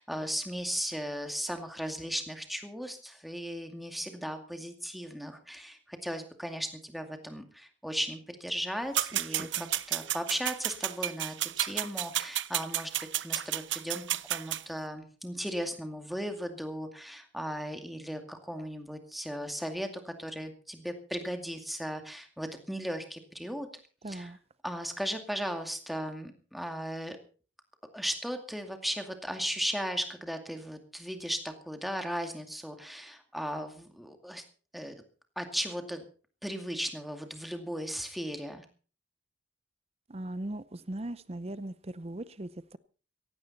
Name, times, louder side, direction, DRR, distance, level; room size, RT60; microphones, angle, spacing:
voice 1, 0.0-12.9 13.2-23.7 24.1-24.3 24.6-27.2 27.9-34.4 34.7-34.9 35.4-36.0 36.4-38.6, equal, ahead, 5 dB, 2.3 m, -36 dB
sound 1, 8.9-14.6, right 13 dB, 75° right, 0.8 m, -32 dB
voice 2, 24.0-24.4 40.1-42.8, right 1 dB, 30° right, 16 dB, 0.6 m, -39 dB
17.0 x 16.0 x 4.2 m, 0.39 s
head